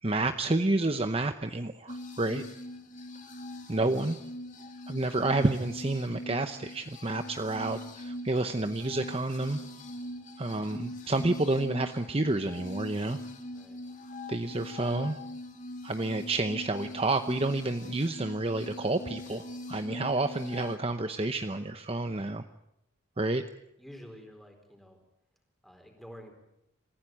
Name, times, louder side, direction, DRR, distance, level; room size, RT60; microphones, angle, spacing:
voice 1, 0.0-2.4 3.7-4.2 4.9-9.6 10.4-13.2 14.3-15.2 15.8-19.4 19.7-22.4 23.2-23.4, right 2 dB, 25° right, 8 dB, 0.8 m, -29 dB
sound 1, 1.9-20.8, left 1 dB, 35° left, 2.7 m, -42 dB
voice 2, 23.8-25.0 25.6-26.3, equal, ahead, 4 dB, 4.3 m, -49 dB
27.5 x 15.5 x 9.0 m, 0.84 s
head